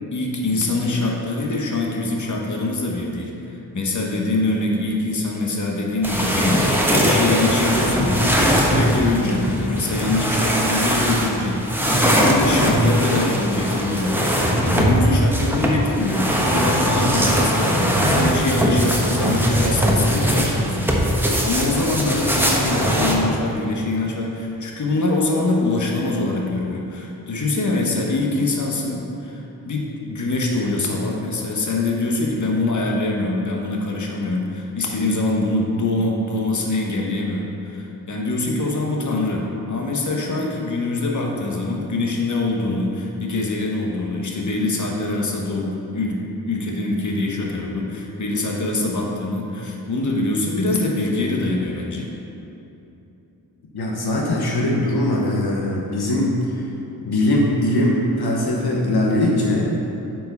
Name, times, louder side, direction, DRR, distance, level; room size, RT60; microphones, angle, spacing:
voice 1, 0.1-6.7 7.0-52.1, left 2 dB, 50° left, 0 dB, 1.2 m, -24 dB
sound 1, 6.0-23.2, equal, 5° right, 1.2 m, -20 dB
voice 2, 53.7-56.6 57.0-59.7, left 1 dB, 70° left, -2 dB, 1.1 m, -21 dB
7.6 x 4.8 x 5.4 m, 2.9 s
cardioid pair, 60°, 39 cm